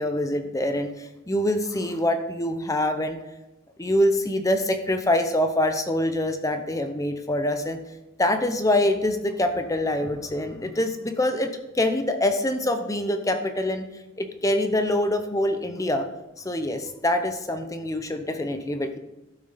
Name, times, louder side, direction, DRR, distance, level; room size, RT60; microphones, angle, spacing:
voice 1, 0.0-3.2 3.8-7.8 8.2-13.9 14.2-16.1 16.4-19.0, left 1 dB, 15° left, 7 dB, 0.6 m, -25 dB
12.0 x 6.5 x 4.1 m, 1.0 s
head